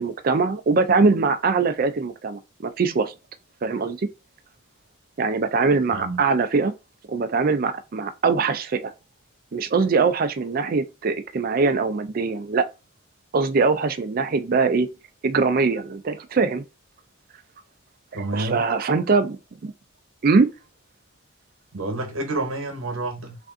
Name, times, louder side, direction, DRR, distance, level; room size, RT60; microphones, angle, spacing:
voice 1, 0.0-3.1 3.6-4.1 5.2-6.7 7.1-8.9 9.5-12.7 13.3-14.9 15.2-16.6 18.3-19.4 19.6-19.7 20.2-20.5, right 4 dB, 45° right, 0.4 m, -22 dB
voice 2, 18.1-18.6 21.7-23.4, right 2 dB, 75° right, 1.0 m, -29 dB
3.3 x 2.6 x 3.6 m
head